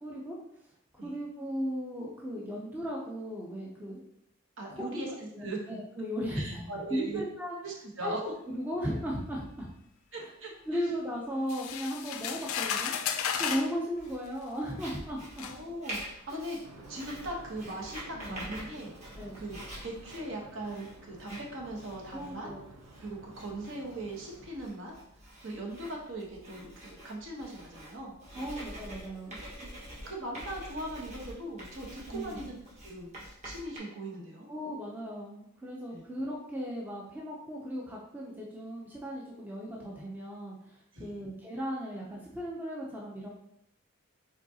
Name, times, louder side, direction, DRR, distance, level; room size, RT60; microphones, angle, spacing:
voice 1, 0.0-0.4 0.9-4.0 4.7-7.6 8.0-8.1 8.5-9.7 10.2-10.3 10.7-12.9 13.4-15.5 16.3-16.4 18.1-18.4 19.2-19.4 22.1-22.7 28.3-29.4 32.1-32.5 34.5-43.3, equal, 10° right, -4 dB, 0.5 m, -36 dB
voice 2, 4.6-5.6 6.3-7.2 7.6-8.2 10.1-10.8 15.4-16.6 16.9-22.5 23.0-24.9 25.4-28.2 29.3-29.7 30.0-32.6 32.8-34.5 35.9-36.0 40.9-41.2, right 1 dB, 55° right, -1 dB, 1.0 m, -40 dB
sound 1, 11.5-13.7 14.7-14.8 15.4-15.6, left 8 dB, 70° left, 0.4 m, -33 dB
Writing, 13.9-33.8, equal, 30° right, 1.4 m, -47 dB
sound 2, 16.6-24.6, right 2 dB, 85° right, 0.6 m, -53 dB
5.0 x 3.8 x 2.8 m, 0.75 s
head